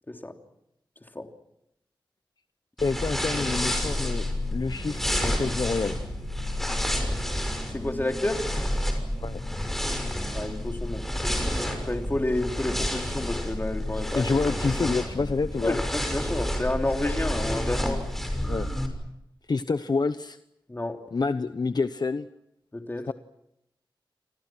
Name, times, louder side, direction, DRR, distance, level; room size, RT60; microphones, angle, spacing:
voice 1, 2.8-6.0 9.2-9.4 14.1-15.8 18.5-18.7 19.5-20.4 21.1-22.3 23.1-23.2, left 4 dB, 55° left, 11 dB, 0.9 m, -28 dB
sound 1, 2.8-18.9, left 1 dB, 5° left, 6.2 m, -29 dB
voice 2, 7.6-8.4 10.3-11.0 11.8-14.3 15.6-18.0 20.7-21.0 22.7-23.1, left 1 dB, 20° left, 4 dB, 3.2 m, -30 dB
29.5 x 25.5 x 6.2 m, 0.82 s
wide cardioid pair, 100°, 9 cm